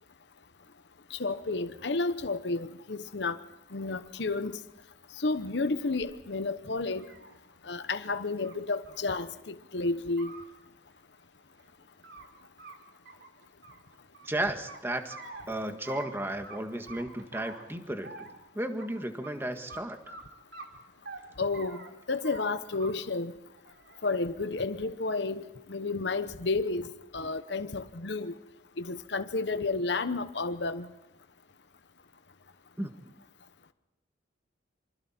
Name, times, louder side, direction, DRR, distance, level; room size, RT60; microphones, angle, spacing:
voice 1, 1.1-3.4 3.7-4.6 5.2-7.1 7.6-10.3 21.4-21.8 22.1-23.3 24.0-26.9 27.1-28.3 28.8-30.9, left 3 dB, 65° left, 1.0 m, -31 dB
sound 1, 6.0-6.1 6.7-7.4 8.4-8.5 8.9-9.0 9.4-9.5 10.0-10.4 11.6-12.2 12.6-12.7 13.0-14.3 14.7-15.4 15.8-16.1 16.4-16.6 16.9-17.7 18.0-18.4 18.8-18.9 19.2-19.3 19.7-19.8 20.1-20.2 20.5-21.2 21.5-21.9 22.2-22.4 22.7-23.1 23.5-24.0 24.8-25.3, right 3 dB, 70° right, 3.3 m, -46 dB
voice 2, 14.2-15.2 15.5-18.3 18.5-20.1 32.8-32.9, right 1 dB, 10° right, 1.7 m, -34 dB
27.5 x 25.5 x 4.4 m
head